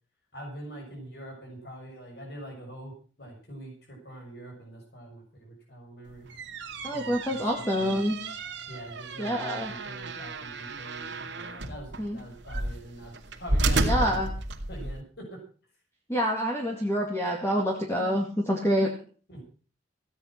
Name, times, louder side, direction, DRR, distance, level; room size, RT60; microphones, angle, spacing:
voice 1, 0.3-6.3 6.9-7.4 7.8-8.0 8.7-14.2 14.7-15.4 19.3-19.4, right 1 dB, 60° left, 1 dB, 6.4 m, -44 dB
sound 1, 6.1-15.0, right 2 dB, 70° right, 2.3 m, -32 dB
voice 2, 6.8-8.2 9.2-9.7 12.0-12.2 13.8-14.3 16.1-18.9, equal, 15° left, -1 dB, 2.4 m, -27 dB
16.0 x 9.8 x 6.0 m, 0.40 s
head